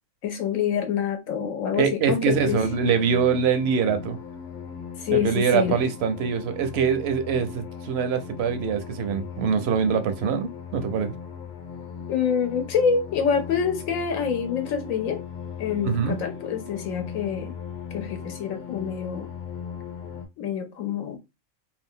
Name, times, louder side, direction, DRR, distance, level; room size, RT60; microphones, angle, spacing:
voice 1, 0.2-2.6 5.0-5.8 12.1-15.2 15.6-17.6 17.9-19.3 20.4-21.2, left 7 dB, 80° left, 1.0 m, -26 dB
voice 2, 1.7-4.2 5.1-11.1 15.8-16.2, right 6 dB, 65° right, 0.7 m, -24 dB
sound 1, 2.3-20.3, left 7 dB, 40° left, 0.9 m, -38 dB
2.7 x 2.3 x 3.6 m
omnidirectional pair, 1.4 m